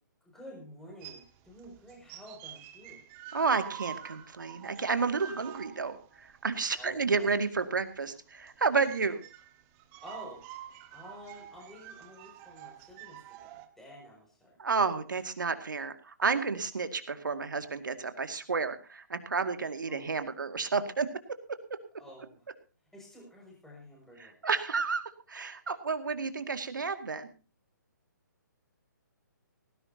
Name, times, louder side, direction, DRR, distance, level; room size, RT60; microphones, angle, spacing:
voice 1, 0.2-3.0 6.7-7.3 10.0-10.4 10.9-14.6 19.9-20.1 22.0-22.5 22.9-24.4, equal, 5° left, -2 dB, 6.3 m, -50 dB
sound 1, 1.0-13.7, right 11 dB, 25° right, 1.6 m, -48 dB
voice 2, 3.3-9.2 14.6-21.1 24.2-27.3, right 4 dB, 75° right, 8 dB, 2.2 m, -31 dB
19.0 x 15.5 x 2.9 m, 0.35 s
figure-of-eight pair, 140°, 11 cm